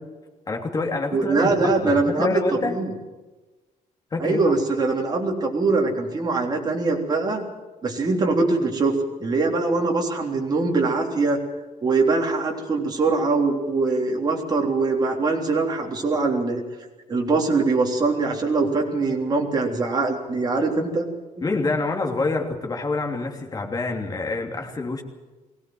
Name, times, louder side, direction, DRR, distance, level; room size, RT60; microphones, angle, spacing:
voice 1, 0.5-2.8 4.1-4.5 21.4-25.0, left 3 dB, 30° left, 2 dB, 3.0 m, -27 dB
voice 2, 1.1-2.9 4.2-7.4 7.8-9.0 9.2-11.4 11.8-16.6 17.1-21.1 21.4-21.5, right 3 dB, 30° right, 1 dB, 3.5 m, -22 dB
21.5 x 17.5 x 7.9 m, 1.2 s
cardioid pair, 155°, 14 cm